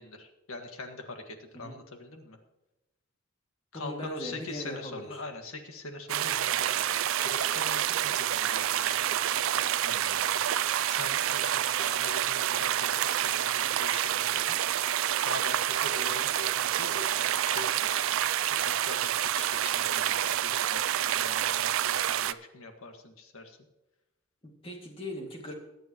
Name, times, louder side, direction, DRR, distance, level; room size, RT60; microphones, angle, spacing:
voice 1, 0.0-2.4 3.7-9.5 10.9-14.6 15.3-18.1 18.5-20.8 21.1-23.6, left 2 dB, 85° left, 5 dB, 1.7 m, -43 dB
voice 2, 3.7-5.2 9.8-10.4 24.4-25.5, left 1 dB, 25° left, 1 dB, 2.2 m, -40 dB
sound 1, 6.1-22.3, right 11 dB, 75° right, 0.4 m, -28 dB
22.0 x 8.9 x 3.0 m, 0.98 s
head